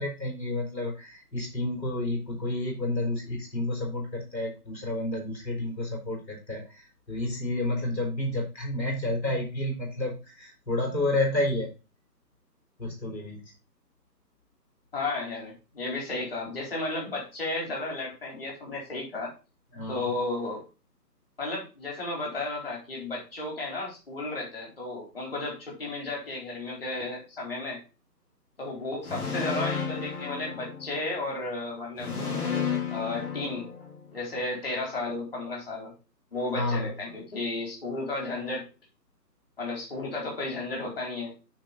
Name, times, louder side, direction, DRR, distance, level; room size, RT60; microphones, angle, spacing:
voice 1, 0.0-11.7 12.8-13.4 19.7-20.1 36.5-36.9, left 1 dB, 90° left, 0 dB, 4.0 m, -30 dB
voice 2, 14.9-19.3 19.9-20.6 21.4-27.8 28.6-32.1 32.9-33.7 34.1-35.9 36.3-38.6 39.6-41.3, left 2 dB, 35° left, -3 dB, 3.9 m, -33 dB
sound 1, 29.0-31.2 32.0-34.2, left 6 dB, 60° left, 3.4 m, -32 dB
9.4 x 4.5 x 3.9 m, 0.31 s
figure-of-eight pair, 175°, 50 cm